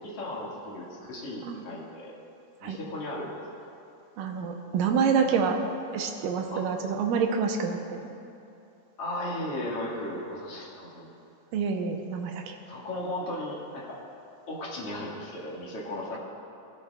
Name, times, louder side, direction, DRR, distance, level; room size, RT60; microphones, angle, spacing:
voice 1, 0.0-2.1 2.6-3.3 6.5-6.6 9.0-11.1 12.7-14.0 14.5-16.2, left 1 dB, 45° left, -5 dB, 2.6 m, -36 dB
voice 2, 4.2-5.6 5.9-8.0 11.5-12.6, right 6 dB, 75° right, 3 dB, 2.4 m, -27 dB
16.5 x 11.5 x 2.4 m, 2.7 s
omnidirectional pair, 4.0 m